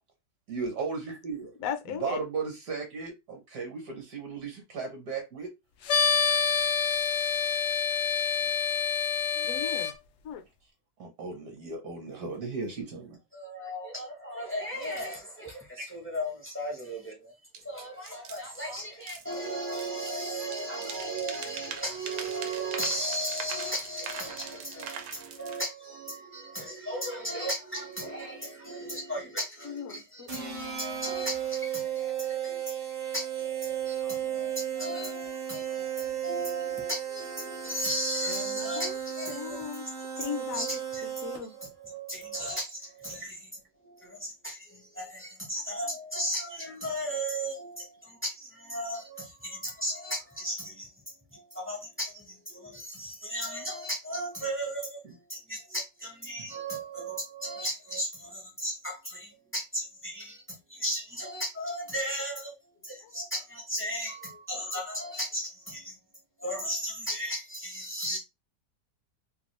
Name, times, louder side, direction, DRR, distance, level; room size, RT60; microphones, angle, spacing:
voice 1, 0.5-1.6 2.0-5.5 11.0-13.2 15.8-15.9 43.2-43.3 46.6-46.7 56.4-56.5, right 4 dB, 65° right, 1.3 m, -36 dB
voice 2, 1.6-2.2 9.3-9.9 10.2-10.4 26.6-26.7 29.6-30.3 38.3-38.9 39.3-39.9 40.2-41.5, left 7 dB, 65° left, 0.9 m, -37 dB
sound 1, 5.9-9.9, left 6 dB, 90° left, 0.6 m, -27 dB
voice 3, 13.3-39.7 40.2-40.3 40.5-41.1 41.4-43.5 43.8-50.9 51.3-62.6 62.8-66.0 66.4-68.2, equal, 15° left, 0.4 m, -36 dB
sound 2, 17.5-17.6 18.1-20.3 20.5-25.6, right 6 dB, 85° right, 1.2 m, -42 dB
sound 3, 30.3-41.7, right 9 dB, 50° right, 0.7 m, -34 dB
3.0 x 2.3 x 3.0 m
omnidirectional pair, 1.8 m